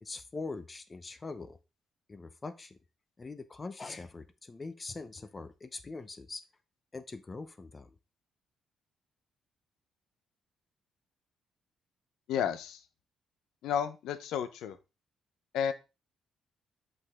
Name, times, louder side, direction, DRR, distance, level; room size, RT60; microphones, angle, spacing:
voice 1, 0.0-1.6 2.1-2.8 3.2-6.4 6.9-7.9, left 3 dB, 30° left, 12 dB, 0.7 m, -42 dB
voice 2, 12.3-12.8 13.6-14.8 15.5-15.7, left 8 dB, 85° left, 11 dB, 0.8 m, -32 dB
6.2 x 5.3 x 3.7 m, 0.28 s
cardioid pair, 90°, 0 cm